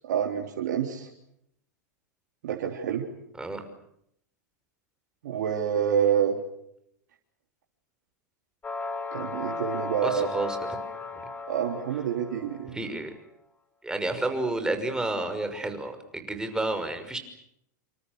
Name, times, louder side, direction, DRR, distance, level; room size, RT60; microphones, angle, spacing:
voice 1, 0.0-1.1 2.4-3.1 5.2-6.4 9.1-10.3 11.5-12.8, right 8 dB, 70° right, 0 dB, 3.6 m, -27 dB
sound 1, 8.6-12.7, left 3 dB, 15° left, 5.2 m, -35 dB
voice 2, 10.0-10.6 12.7-13.1 13.8-17.2, right 2 dB, 5° right, 7 dB, 5.9 m, -30 dB
28.0 x 27.5 x 6.8 m, 0.75 s
hypercardioid pair, 105°, 10 cm